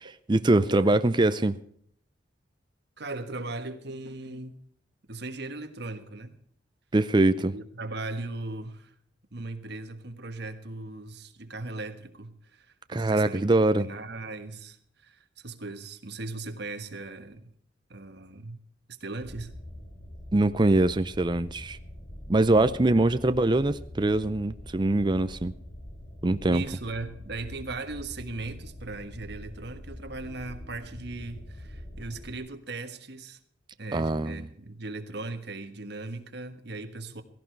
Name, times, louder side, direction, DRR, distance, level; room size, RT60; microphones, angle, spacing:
voice 1, 0.0-1.6 6.9-7.5 12.9-13.9 20.3-21.8 22.3-25.5 26.2-26.6 33.9-34.5, right 2 dB, 25° right, 0.5 m, -23 dB
voice 2, 0.7-1.0 3.0-4.6 5.1-6.3 7.3-8.9 9.3-13.5 13.8-17.5 17.9-18.6 18.9-19.5 22.5-23.0 26.5-33.4 33.8-37.2, right 2 dB, 60° right, 1.5 m, -38 dB
sound 1, 19.2-32.4, equal, 50° left, 4.9 m, -44 dB
16.5 x 15.5 x 4.6 m
head